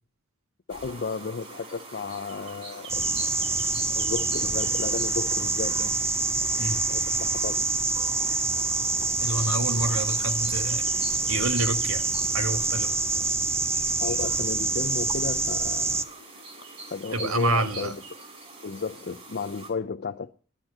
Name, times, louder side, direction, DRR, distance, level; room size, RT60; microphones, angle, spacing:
voice 1, 0.7-3.3 3.9-5.9 6.9-7.6 14.0-16.0 16.9-18.0 18.6-20.3, left 5 dB, 50° left, 0.5 m, -33 dB
sound 1, 0.7-19.7, right 3 dB, 30° right, 3.8 m, -43 dB
sound 2, 2.9-16.0, right 3 dB, 10° right, 0.6 m, -26 dB
voice 2, 9.2-10.8 11.3-12.0 12.3-13.0 17.1-17.9, right 2 dB, 80° right, 1.5 m, -28 dB
10.5 x 10.0 x 7.5 m
head